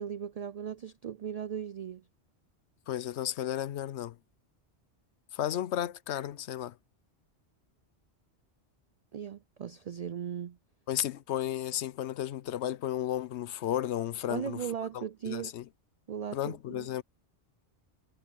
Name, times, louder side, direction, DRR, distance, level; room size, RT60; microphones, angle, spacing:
voice 1, 0.0-2.0 9.1-10.6 14.3-15.5 16.1-16.9, right 8 dB, 65° right, 0.3 m, -37 dB
voice 2, 2.9-4.2 5.3-6.8 10.9-14.7 14.9-15.7 16.3-17.0, left 11 dB, 75° left, 0.9 m, -33 dB
omnidirectional pair, 1.2 m